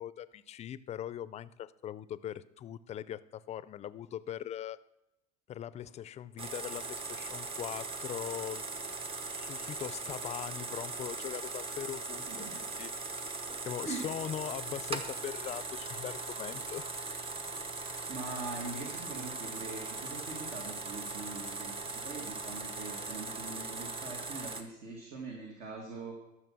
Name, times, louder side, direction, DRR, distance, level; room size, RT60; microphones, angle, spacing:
voice 1, 0.0-4.8 5.5-9.0 9.3-12.9 13.7-16.9, left 10 dB, 40° left, 17 dB, 0.5 m, -41 dB
sound 1, 6.4-24.6, right 3 dB, 30° right, 1.1 m, -39 dB
voice 2, 12.3-12.6 13.8-14.1 17.8-26.1, right 3 dB, 60° right, 0 dB, 2.2 m, -43 dB
12.5 x 6.4 x 6.1 m, 0.93 s
supercardioid pair, 110°, 18 cm